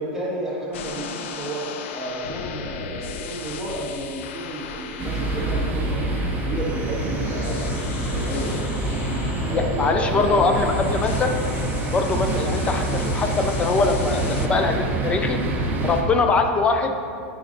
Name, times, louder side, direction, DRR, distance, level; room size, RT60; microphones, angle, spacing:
voice 1, 0.0-1.7 1.9-6.1 6.4-8.7 9.4-10.4 12.2-12.4 16.7-16.8, right 1 dB, 5° right, -7 dB, 1.5 m, -32 dB
sound 1, 0.7-16.1, left 5 dB, 80° left, 0.4 m, -35 dB
sound 2, 5.0-16.0, right 2 dB, 25° right, 0.6 m, -26 dB
voice 2, 9.5-11.3 11.9-15.4 15.8-16.9, left 3 dB, 15° left, 5 dB, 0.4 m, -22 dB
9.3 x 5.0 x 2.5 m, 2.4 s
supercardioid pair, 145°, 7 cm